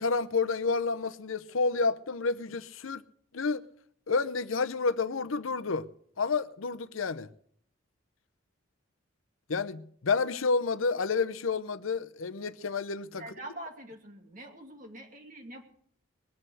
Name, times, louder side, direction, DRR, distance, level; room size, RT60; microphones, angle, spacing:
voice 1, 0.0-3.0 3.3-3.6 4.1-5.9 6.2-7.3 9.5-13.2, left 4 dB, 90° left, 0.8 m, -29 dB
voice 2, 13.2-15.6, right 1 dB, 40° right, 2.5 m, -44 dB
20.5 x 7.7 x 8.0 m
head